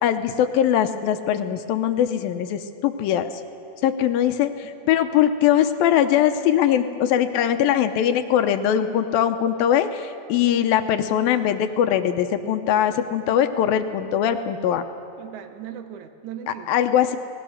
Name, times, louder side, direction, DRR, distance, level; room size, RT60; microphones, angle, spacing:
voice 1, 0.0-3.4 3.8-14.9 16.5-17.2, left 10 dB, 75° left, 8 dB, 2.5 m, -21 dB
voice 2, 15.2-16.8, right 10 dB, 65° right, 8 dB, 2.2 m, -39 dB
29.0 x 19.5 x 6.5 m, 2.5 s
omnidirectional pair, 4.5 m